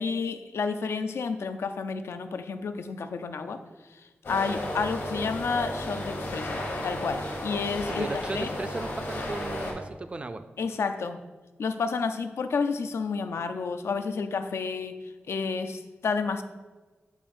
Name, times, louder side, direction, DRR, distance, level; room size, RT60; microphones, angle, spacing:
voice 1, 0.0-3.6 3.9-8.1 8.3-8.5 10.6-11.2 11.6-16.4, left 5 dB, 90° left, 9 dB, 0.4 m, -30 dB
sound 1, 4.2-9.7, left 1 dB, 70° left, 1.5 m, -33 dB
voice 2, 7.9-10.4, right 3 dB, 30° right, 10 dB, 0.3 m, -36 dB
7.2 x 2.5 x 5.1 m, 1.3 s
wide cardioid pair, 150°, 4 cm